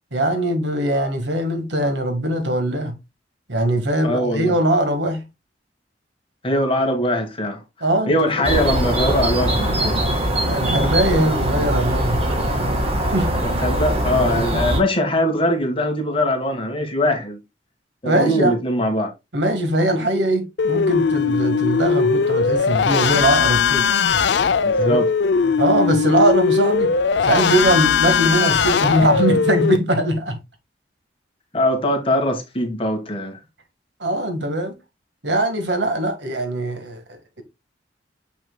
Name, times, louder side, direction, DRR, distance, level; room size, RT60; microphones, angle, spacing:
voice 1, 0.1-3.0 3.5-5.3 7.8-8.5 10.5-12.2 13.1-13.3 14.3-14.6 18.1-18.6 19.3-23.9 24.8-25.0 25.6-26.9 27.2-30.4 34.0-34.8 35.2-37.4, right 1 dB, 80° right, 1.7 m, -21 dB
voice 2, 4.0-4.5 6.4-7.6 8.1-10.0 13.4-17.4 18.0-19.1 24.6-25.1 31.5-33.4, left 1 dB, 30° left, 1.6 m, -21 dB
sound 1, 8.4-14.8, right 1 dB, 35° right, 1.9 m, -21 dB
sound 2, 20.6-29.8, left 5 dB, 70° left, 0.5 m, -19 dB
7.1 x 5.9 x 2.3 m
head